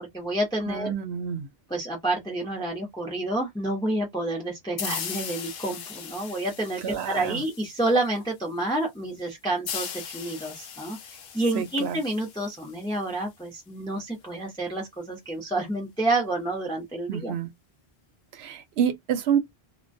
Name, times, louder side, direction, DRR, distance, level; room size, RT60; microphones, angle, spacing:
voice 1, 0.0-0.9 1.7-11.0 11.3-17.3, right 2 dB, 5° left, 0.7 m, -29 dB
voice 2, 0.7-1.5 6.8-7.4 11.5-12.0 17.1-17.5 18.3-19.4, right 8 dB, 85° right, 0.9 m, -28 dB
sound 1, 4.8-8.2 9.7-13.2, left 8 dB, 70° left, 0.8 m, -38 dB
2.2 x 2.2 x 2.6 m
omnidirectional pair, 1.1 m